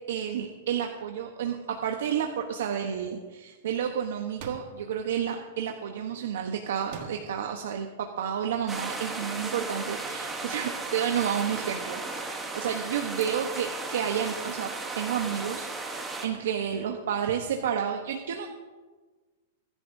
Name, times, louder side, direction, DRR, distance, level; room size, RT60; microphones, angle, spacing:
voice 1, 0.1-18.5, right 8 dB, 70° right, 3 dB, 1.0 m, -31 dB
sound 1, 4.4-4.9 6.9-7.5, right 6 dB, 45° right, 1.6 m, -42 dB
sound 2, 8.7-16.3, right 3 dB, 10° right, 1.1 m, -35 dB
24.0 x 11.0 x 2.7 m, 1.4 s
supercardioid pair, 170°, 0 cm